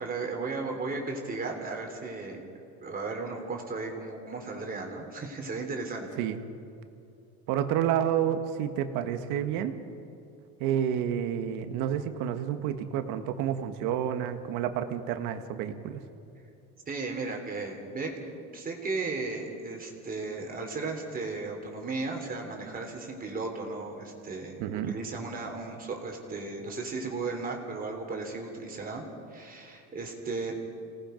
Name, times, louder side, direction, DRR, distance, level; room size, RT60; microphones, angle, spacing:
voice 1, 0.0-2.4 2.8-6.1 16.9-29.0 29.3-30.6, right 3 dB, 30° right, 2 dB, 3.3 m, -35 dB
voice 2, 7.5-9.8 10.6-16.0 24.6-24.9, right 9 dB, 80° right, 8 dB, 1.6 m, -29 dB
27.0 x 18.5 x 5.3 m, 2.6 s
cardioid pair, 125°, 31 cm